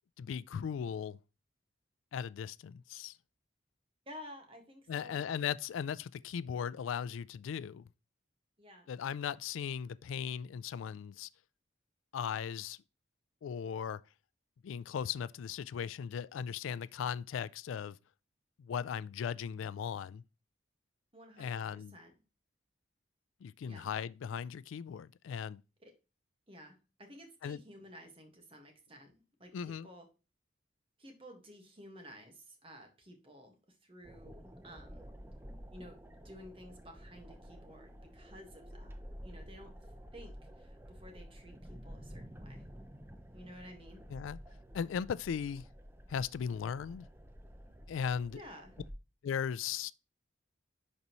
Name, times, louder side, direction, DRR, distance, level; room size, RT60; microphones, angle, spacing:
voice 1, 0.2-1.2 2.1-3.2 4.9-7.9 8.9-11.3 12.1-12.8 13.4-14.0 14.6-18.0 18.6-20.2 21.4-21.9 23.4-25.6 27.4-27.6 29.5-29.9 44.1-44.4 44.7-45.6 46.1-47.1 47.9-48.4 49.2-49.9, left 7 dB, 85° left, 0.3 m, -37 dB
voice 2, 4.0-5.3 8.6-8.9 21.1-22.1 23.6-23.9 25.8-25.9 26.5-29.1 29.4-30.1 31.0-35.1 35.7-36.0 36.2-39.7 40.1-42.6 43.3-44.0 48.3-48.7, equal, 30° right, 1.5 m, -53 dB
sound 1, 34.0-48.9, equal, 10° right, 0.6 m, -51 dB
10.5 x 4.1 x 3.0 m
head